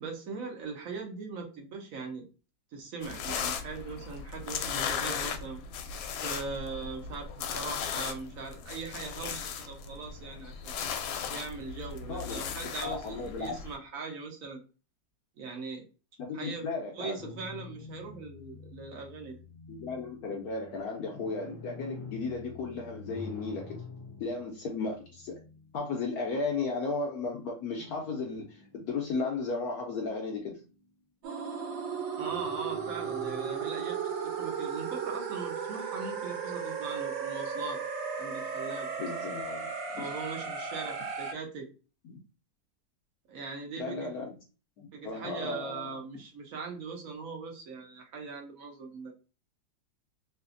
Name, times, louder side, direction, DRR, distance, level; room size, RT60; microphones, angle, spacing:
voice 1, 0.0-2.3 2.7-5.6 6.2-10.7 11.3-14.6 15.4-15.8 16.3-16.7 16.9-19.4 32.2-37.8 38.2-38.9 40.0-41.7 43.3-44.1 44.9-49.1, right 4 dB, 60° right, 0.9 m, -40 dB
sound 1, 3.0-13.8, left 7 dB, 90° left, 1.3 m, -37 dB
voice 2, 12.8-13.5 16.2-17.1 19.7-23.8 24.2-25.3 25.7-30.6 39.0-40.2 42.0-42.2 43.8-44.3 44.8-46.0, left 4 dB, 70° left, 0.9 m, -35 dB
sound 2, 17.2-26.5 27.8-29.4 29.8-30.9 32.2-33.9, left 4 dB, 35° left, 0.4 m, -48 dB
sound 3, 31.2-41.3, right 6 dB, 85° right, 1.3 m, -35 dB
3.2 x 2.8 x 2.4 m
omnidirectional pair, 2.0 m